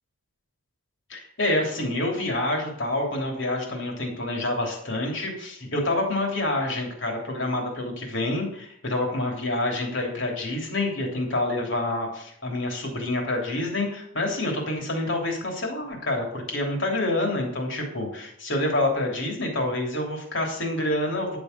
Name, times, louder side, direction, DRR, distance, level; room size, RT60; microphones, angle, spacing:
voice 1, 1.1-21.4, left 1 dB, 60° left, 1 dB, 3.3 m, -27 dB
11.0 x 7.1 x 6.8 m, 0.69 s
head